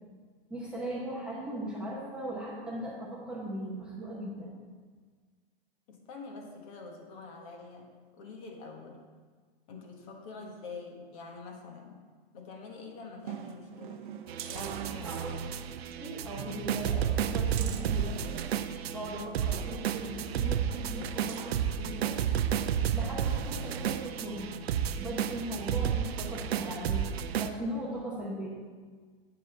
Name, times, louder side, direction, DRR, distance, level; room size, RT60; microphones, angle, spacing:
voice 1, 0.5-4.5 15.0-15.4 15.6-18.4 18.9-22.2 22.9-27.1 27.4-28.5, right 1 dB, 5° right, -6 dB, 0.9 m, -39 dB
voice 2, 5.9-9.0 9.7-12.0 12.3-14.1 14.5-15.5, left 4 dB, 35° left, 2 dB, 1.4 m, -46 dB
sound 1, 13.2-15.5 15.8-16.0 16.4-18.9 19.5-21.7 22.2-22.3, right 9 dB, 55° right, 0.8 m, -45 dB
sound 2, 14.3-27.5, right 8 dB, 90° right, 0.7 m, -32 dB
8.9 x 5.3 x 6.8 m, 1.5 s
hypercardioid pair, 165°, 30 cm